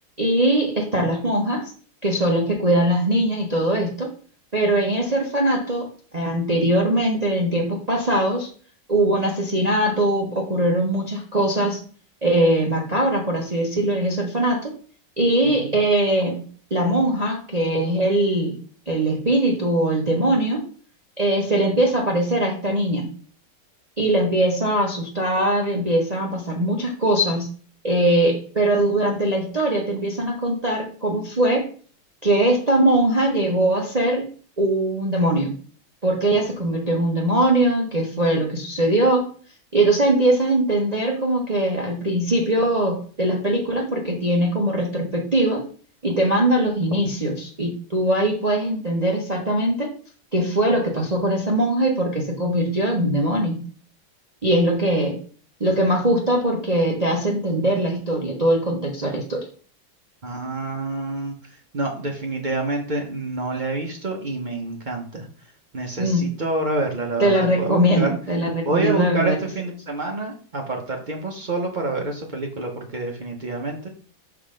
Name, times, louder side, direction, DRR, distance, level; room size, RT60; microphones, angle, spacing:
voice 1, 0.2-1.7 2.0-4.1 4.5-8.5 8.9-11.8 12.2-14.7 15.2-16.4 16.7-18.6 18.9-20.6 21.2-23.1 24.0-27.5 27.8-31.7 32.2-34.3 34.6-35.5 36.0-39.3 39.7-45.6 46.0-49.9 50.3-53.6 54.4-55.2 55.6-59.4 66.0-66.2 67.2-69.4, right 1 dB, 35° right, 0 dB, 0.6 m, -21 dB
voice 2, 15.4-15.8 60.2-61.3 61.7-65.3 65.7-68.1 68.6-73.9, right 2 dB, 80° right, 1 dB, 0.4 m, -27 dB
5.8 x 3.7 x 4.9 m, 0.43 s
omnidirectional pair, 2.2 m